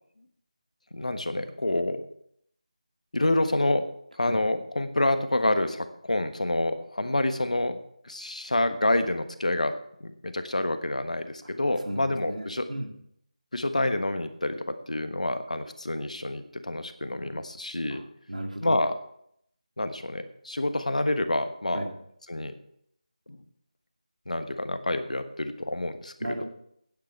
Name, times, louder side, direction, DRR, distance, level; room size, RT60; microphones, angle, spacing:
voice 1, 0.9-2.1 3.1-3.9 4.2-7.8 8.0-12.6 13.5-18.0 18.6-18.9 19.8-21.8 22.3-22.5 23.3-23.4 24.3-26.1, left 1 dB, 75° left, 9 dB, 1.3 m, -28 dB
voice 2, 11.8-12.9 17.9-18.8 21.7-21.9 26.2-26.4, right 1 dB, 85° right, 3 dB, 2.5 m, -35 dB
11.5 x 9.7 x 4.5 m, 0.71 s
figure-of-eight pair, 165°, 4 cm